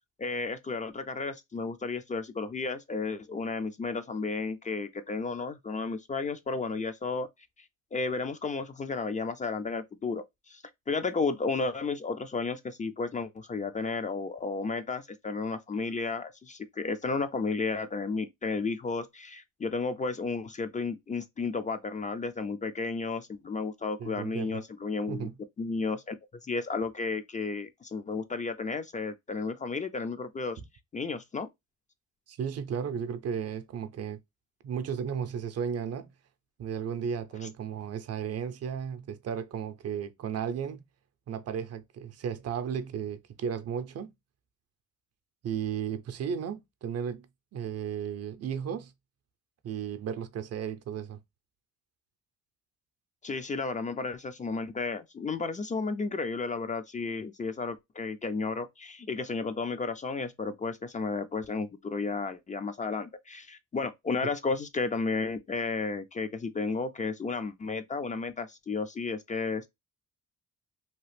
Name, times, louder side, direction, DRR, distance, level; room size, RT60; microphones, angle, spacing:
voice 1, 0.2-7.3 7.9-25.3 25.6-26.1 26.4-30.6 30.9-31.5 53.2-69.7, left 4 dB, 25° left, 0.4 m, -33 dB
voice 2, 24.0-24.6 25.1-25.3 32.3-34.2 34.6-36.1 36.6-40.8 41.3-44.1 45.4-47.3 47.5-48.9 49.6-51.2, right 7 dB, 55° right, 0.6 m, -34 dB
2.9 x 2.4 x 3.2 m
cardioid pair, 90°, 30 cm